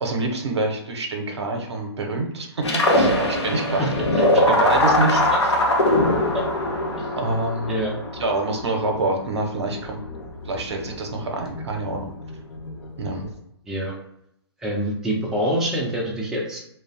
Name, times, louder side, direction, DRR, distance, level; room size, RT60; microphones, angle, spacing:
voice 1, 0.0-2.6 2.9-3.9 4.1-5.5 7.2-10.0 10.4-12.1 13.0-13.3, right 2 dB, 80° right, 2 dB, 0.7 m, -26 dB
sound 1, 2.6-13.3, left 1 dB, 85° left, 0.6 m, -22 dB
voice 2, 14.6-16.6, equal, 5° right, -4 dB, 0.4 m, -25 dB
2.3 x 2.0 x 2.7 m, 0.77 s
hypercardioid pair, 130°, 14 cm